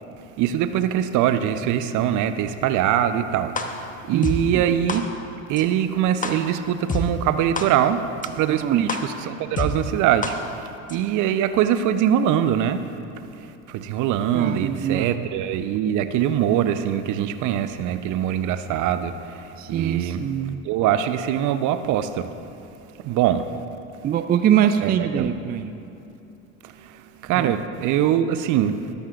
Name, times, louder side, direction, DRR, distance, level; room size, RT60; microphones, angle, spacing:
voice 1, 0.4-5.0 5.5-12.8 13.3-20.2 20.6-22.3 23.0-23.5 24.8-25.3 26.6-28.9, right 10 dB, 45° right, 11 dB, 0.8 m, -23 dB
sound 1, 3.6-3.7 4.2-4.3 4.9-5.0 5.6-5.7 6.2-6.3 6.9-7.0 7.6-7.7 8.2-8.3 8.9-9.0 9.6-9.7 10.2-10.3 10.9-11.0, left 4 dB, 20° left, 1.2 m, -26 dB
voice 2, 4.1-4.6 8.5-8.9 14.3-15.2 19.6-20.6 24.0-25.8 27.4-27.6, right 9 dB, 25° right, 9 dB, 0.4 m, -23 dB
18.5 x 13.0 x 2.5 m, 2.9 s
hypercardioid pair, 70°, 41 cm